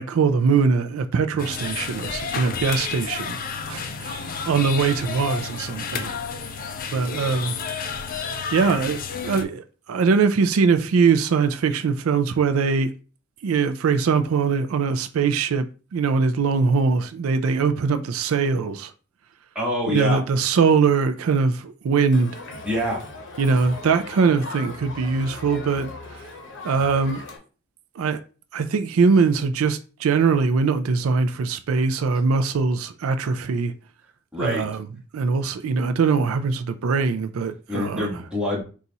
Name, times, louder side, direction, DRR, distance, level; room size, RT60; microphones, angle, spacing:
voice 1, 0.0-3.4 3.7-6.2 6.6-7.6 8.5-12.9 13.4-15.7 15.9-18.9 19.9-22.3 23.4-25.9 26.6-27.2 28.0-28.2 28.5-33.7 34.4-34.9 35.1-38.2, right 5 dB, 85° right, 0.4 m, -22 dB
sound 1, 1.4-9.4, left 6 dB, 45° left, 0.4 m, -31 dB
voice 2, 19.5-20.2 22.6-23.0 34.3-34.6 37.7-38.6, left 1 dB, 5° right, 1.4 m, -25 dB
Crowd, 22.1-27.4, left 2 dB, 65° left, 0.9 m, -38 dB
4.1 x 2.4 x 3.9 m
head